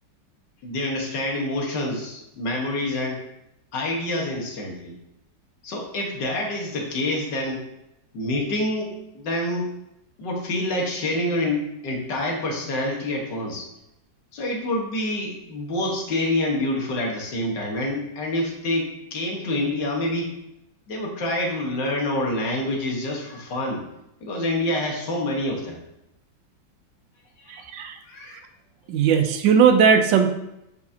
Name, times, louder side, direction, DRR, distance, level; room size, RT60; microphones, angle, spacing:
voice 1, 0.6-3.2 3.7-5.0 5.6-7.6 8.1-9.7 10.2-13.7 14.3-20.3 20.9-23.8 24.2-25.8 27.4-27.6 28.1-28.4, left 1 dB, 70° left, 0 dB, 2.0 m, -27 dB
voice 2, 27.5-27.9 28.9-30.3, right 6 dB, 80° right, 7 dB, 1.4 m, -18 dB
8.3 x 5.2 x 2.8 m, 0.85 s
omnidirectional pair, 2.0 m